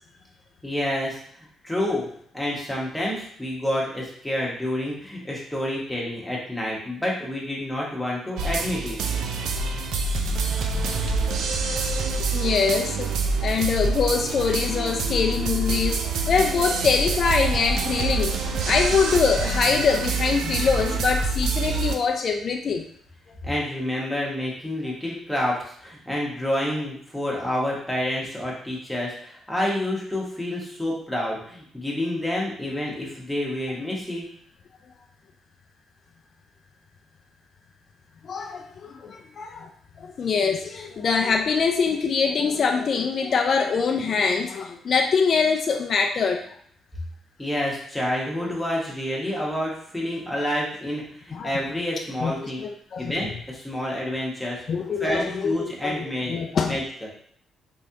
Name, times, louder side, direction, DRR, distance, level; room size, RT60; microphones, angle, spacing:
voice 1, 0.6-1.2 1.6-2.1 2.3-9.0 23.4-34.3 47.4-52.6 53.0-54.6 55.0-56.4 56.7-57.1, left 1 dB, 5° left, -4 dB, 1.3 m, -28 dB
sound 1, 8.4-22.0, right 3 dB, 80° right, 0.4 m, -26 dB
voice 2, 12.3-13.1 13.4-16.0 16.3-18.3 18.6-22.8 33.0-33.1 38.2-39.7 40.0-46.4 48.4-48.5 51.3-51.5 52.2-52.3 52.6-53.1 54.7-56.8, left 5 dB, 50° left, 3 dB, 0.4 m, -24 dB
3.6 x 3.1 x 2.8 m, 0.62 s
cardioid pair, 90°, 0 cm